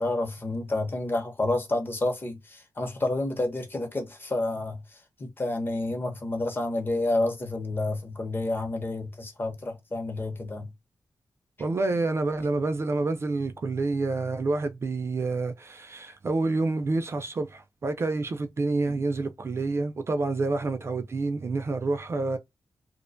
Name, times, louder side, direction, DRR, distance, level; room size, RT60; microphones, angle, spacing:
voice 1, 0.0-4.8 5.2-10.7 18.9-19.0, left 2 dB, 30° left, 0.7 m, -29 dB
voice 2, 11.6-22.4, right 3 dB, 35° right, 0.3 m, -28 dB
2.4 x 2.2 x 2.4 m
wide cardioid pair, 160°, 7 cm